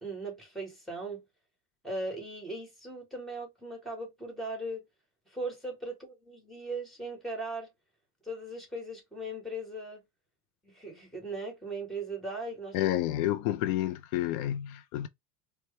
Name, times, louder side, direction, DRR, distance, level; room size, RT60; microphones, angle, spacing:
voice 1, 0.0-1.2 1.8-4.8 5.3-7.7 8.2-10.0 10.6-12.9, right 2 dB, ahead, 1.6 m, -38 dB
voice 2, 12.7-15.1, left 13 dB, 75° left, 0.6 m, -30 dB
4.5 x 2.3 x 3.2 m
cardioid pair, 150°, 44 cm